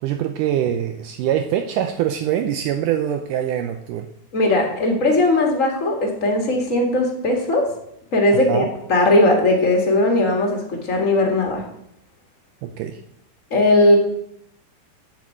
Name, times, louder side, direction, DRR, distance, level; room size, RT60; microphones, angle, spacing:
voice 1, 0.0-4.1 8.5-8.7 12.6-13.0, right 10 dB, 85° right, 6 dB, 1.9 m, -23 dB
voice 2, 4.3-7.7 8.1-8.6 8.9-11.6 13.5-13.9, left 2 dB, 35° left, 1 dB, 1.3 m, -18 dB
7.6 x 7.4 x 7.5 m, 0.74 s
omnidirectional pair, 4.3 m